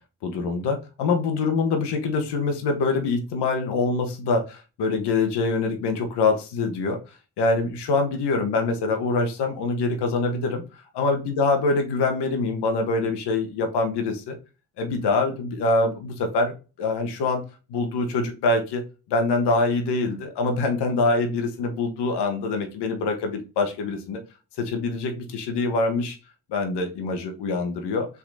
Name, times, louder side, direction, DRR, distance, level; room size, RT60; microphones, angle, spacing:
voice 1, 0.2-10.6 10.9-14.4 14.8-17.4 17.7-18.8 19.1-24.2 24.6-26.2 26.5-28.1, left 3 dB, 80° left, 5 dB, 1.5 m, -24 dB
5.7 x 4.1 x 4.0 m, 0.30 s
supercardioid pair, 50°, 40 cm